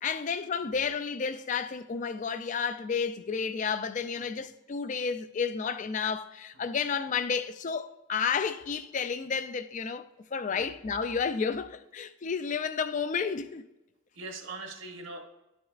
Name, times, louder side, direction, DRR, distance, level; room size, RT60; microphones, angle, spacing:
voice 1, 0.0-10.1 10.3-13.7, left 6 dB, 35° left, 0.3 m, -31 dB
voice 2, 14.1-15.2, right 3 dB, 65° right, 1.1 m, -42 dB
11.0 x 6.3 x 2.4 m
head